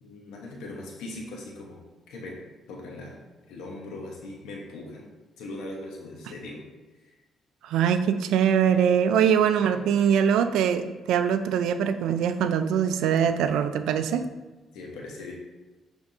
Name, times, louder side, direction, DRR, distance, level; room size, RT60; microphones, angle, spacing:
voice 1, 0.0-1.8 2.1-2.4 2.7-3.1 3.5-5.1 5.4-6.7 9.7-10.2 14.7-15.3, left 2 dB, 90° left, -1 dB, 1.1 m, -40 dB
voice 2, 7.6-14.3, right 8 dB, 85° right, 10 dB, 0.3 m, -23 dB
10.5 x 3.5 x 2.7 m, 1.2 s
cardioid pair, 90°, 0 cm